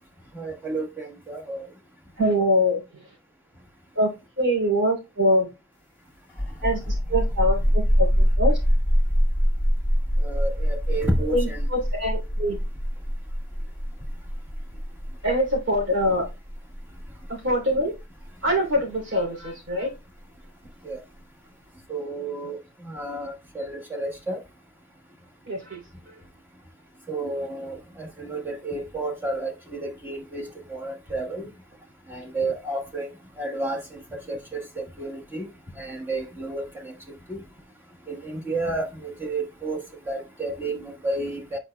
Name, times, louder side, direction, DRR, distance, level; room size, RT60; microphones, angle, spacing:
voice 1, 0.3-1.7 10.2-11.7 20.8-21.0 21.9-24.4 27.1-31.5 32.1-33.1 33.4-35.5 35.8-36.9 37.3-37.4 38.1-41.6, right 2 dB, 10° right, 1.2 m, -31 dB
voice 2, 2.2-2.8 3.9-4.1 4.4-5.5 6.6-8.1 8.4-8.6 11.3-12.6 15.2-16.3 17.3-18.0 18.4-19.9 25.5-25.8 26.1-26.2, equal, 65° right, 3.0 m, -24 dB
sound 1, 6.3-19.7, equal, 10° left, 2.0 m, -24 dB
9.0 x 4.8 x 2.2 m
head